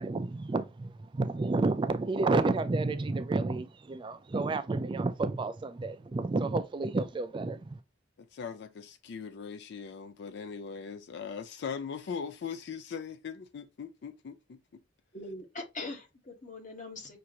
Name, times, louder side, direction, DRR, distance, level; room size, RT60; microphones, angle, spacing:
voice 1, 0.0-7.8, right 3 dB, 25° right, 0.3 m, -30 dB
voice 2, 8.2-14.6, left 6 dB, 65° left, 0.4 m, -40 dB
voice 3, 15.1-17.2, left 2 dB, 40° left, 1.1 m, -42 dB
5.9 x 2.5 x 2.8 m
head